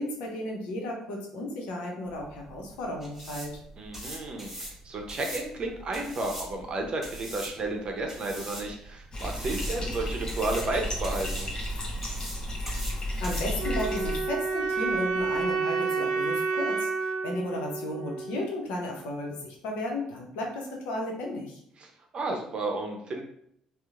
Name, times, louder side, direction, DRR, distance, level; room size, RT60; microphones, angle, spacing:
voice 1, 0.0-3.5 13.2-21.6, left 1 dB, 80° left, 0 dB, 0.6 m, -34 dB
sound 1, 2.1-15.5, right 1 dB, 10° right, 1.2 m, -42 dB
voice 2, 3.8-11.5 21.8-23.2, right 2 dB, 45° right, 2 dB, 0.6 m, -32 dB
Bathtub (filling or washing), 9.1-14.2, equal, 35° left, 0.6 m, -33 dB
sound 2, 13.6-18.6, right 4 dB, 85° right, 0.7 m, -29 dB
2.9 x 2.0 x 2.4 m, 0.70 s
supercardioid pair, 65°, 2 cm